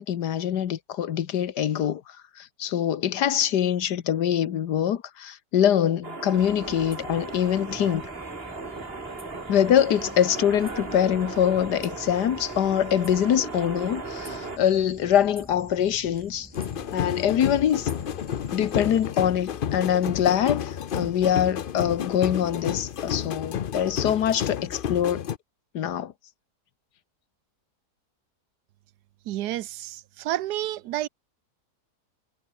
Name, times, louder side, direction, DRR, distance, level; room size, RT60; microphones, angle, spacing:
voice 1, 0.0-2.0 2.4-8.0 9.5-16.5 16.9-17.9 18.5-25.2 25.7-26.1, left 10 dB, 80° left, 1.7 m, -24 dB
sound 1, 6.0-14.6, right 3 dB, 35° right, 2.7 m, -37 dB
sound 2, 6.4-19.1, equal, 5° right, 4.9 m, -47 dB
sound 3, 16.5-25.4, left 9 dB, 55° left, 0.6 m, -31 dB
voice 2, 29.3-31.1, right 14 dB, 80° right, 1.2 m, -30 dB
omnidirectional pair, 1.7 m